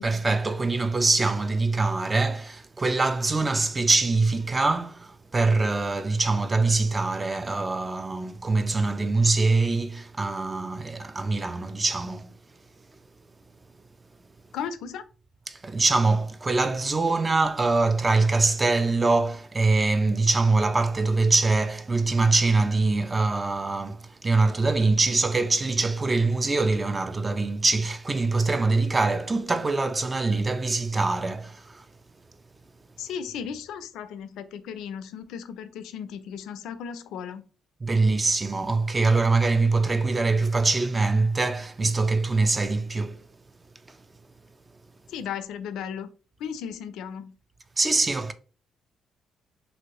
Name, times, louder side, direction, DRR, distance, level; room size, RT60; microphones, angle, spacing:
voice 1, 0.0-12.3 15.5-31.8 37.8-43.2 43.9-44.0 47.8-48.3, right 3 dB, 25° right, 0.3 m, -23 dB
voice 2, 14.5-15.0 33.0-37.4 45.1-46.1 46.4-47.3, left 7 dB, 85° left, 0.4 m, -35 dB
3.0 x 2.7 x 2.9 m
cardioid pair, 90°, 0 cm